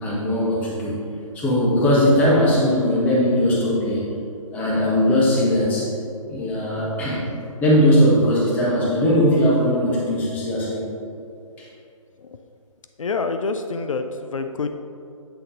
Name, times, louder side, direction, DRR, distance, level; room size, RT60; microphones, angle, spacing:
voice 1, 0.0-0.9 1.3-4.0 4.5-5.9 6.3-7.3 7.6-10.9 11.6-11.7, equal, 10° left, -5 dB, 0.9 m, -19 dB
voice 2, 13.0-14.7, left 4 dB, 65° left, 7 dB, 0.4 m, -27 dB
7.9 x 3.8 x 3.9 m, 2.6 s
figure-of-eight pair, 140°, 18 cm